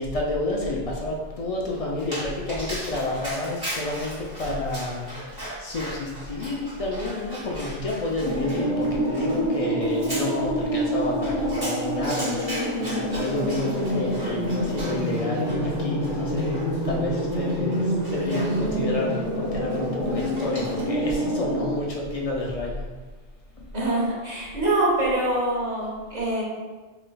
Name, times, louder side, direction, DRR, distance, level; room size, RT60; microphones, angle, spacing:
voice 1, 0.0-22.9, left 2 dB, 60° left, -2 dB, 0.3 m, -30 dB
Dog, 2.0-21.1, equal, 20° right, 1.2 m, -39 dB
sound 1, 8.2-21.7, equal, 5° right, 0.8 m, -27 dB
voice 2, 23.7-26.4, right 1 dB, 40° right, -5 dB, 0.9 m, -24 dB
5.0 x 2.5 x 2.2 m, 1.3 s
omnidirectional pair, 1.2 m